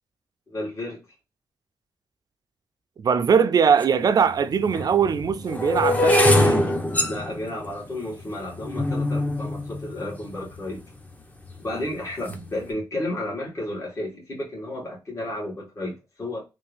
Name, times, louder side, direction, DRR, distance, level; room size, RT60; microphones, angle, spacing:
voice 1, 0.5-1.0 7.0-10.8 11.6-16.4, left 1 dB, 40° left, 1.9 m, -32 dB
voice 2, 3.0-6.7, right 6 dB, 55° right, 0.5 m, -21 dB
sound 1, 3.8-3.9 4.7-10.8 11.5-11.8 12.1-12.5, left 1 dB, 20° left, 0.9 m, -23 dB
3.5 x 2.6 x 3.3 m
cardioid pair, 85°, 8 cm